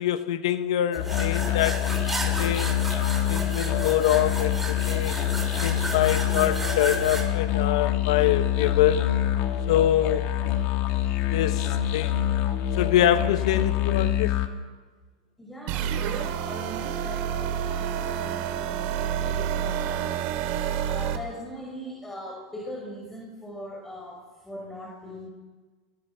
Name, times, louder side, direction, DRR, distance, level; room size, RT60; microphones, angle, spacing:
voice 1, 0.0-1.9 2.2-2.8 3.3-5.2 5.6-9.1 9.7-10.3 11.3-12.4 12.8-14.3, left 12 dB, 75° left, 1.3 m, -25 dB
sound 1, 0.9-7.2, right 2 dB, 5° right, 6.5 m, -33 dB
sound 2, 1.0-14.5, left 11 dB, 55° left, 2.6 m, -26 dB
voice 2, 15.4-25.3, equal, 10° left, 5.8 m, -41 dB
sound 3, 15.7-21.2, right 9 dB, 55° right, 3.4 m, -28 dB
29.5 x 24.0 x 7.0 m
supercardioid pair, 120°, 3 cm